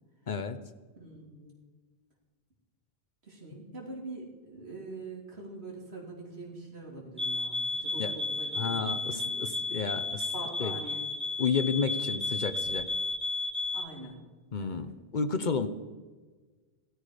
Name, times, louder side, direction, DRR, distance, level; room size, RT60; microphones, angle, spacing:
voice 1, 0.3-0.6 8.0-8.1 8.6-10.3 10.6-10.7 11.4-12.9 14.5-15.7, left 5 dB, 50° left, 11 dB, 0.9 m, -31 dB
voice 2, 1.0-1.6 3.2-9.4 10.3-11.0 13.7-14.2 14.6-14.8, right 2 dB, 85° right, -2 dB, 3.4 m, -44 dB
sound 1, 7.2-13.9, left 3 dB, 5° right, 1.1 m, -33 dB
16.5 x 13.0 x 5.1 m, 1.3 s
omnidirectional pair, 1.1 m